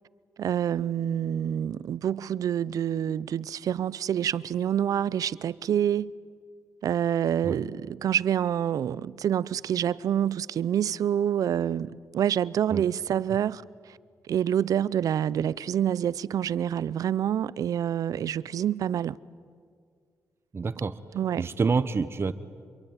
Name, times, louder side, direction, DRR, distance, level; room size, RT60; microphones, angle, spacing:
voice 1, 0.4-6.1 6.8-14.0 14.3-19.2 21.1-21.5, right 9 dB, 75° right, 0.6 m, -27 dB
voice 2, 20.5-21.0 21.4-22.3, right 4 dB, 40° right, 1.1 m, -27 dB
26.5 x 23.0 x 9.0 m
cardioid pair, 65°, 6 cm